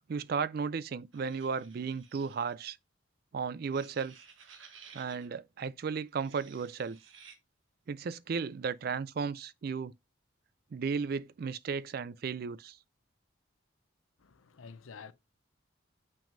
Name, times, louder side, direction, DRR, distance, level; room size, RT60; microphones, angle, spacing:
voice 1, 0.1-2.8 3.3-4.2 4.9-7.0 7.9-9.9 10.7-12.8, right 5 dB, 50° right, 0.3 m, -34 dB
sound 1, 1.1-2.7 3.6-5.3 6.1-7.4, right 6 dB, 70° right, 1.3 m, -56 dB
voice 2, 14.2-15.1, left 5 dB, 85° left, 0.6 m, -49 dB
6.9 x 5.9 x 2.6 m
head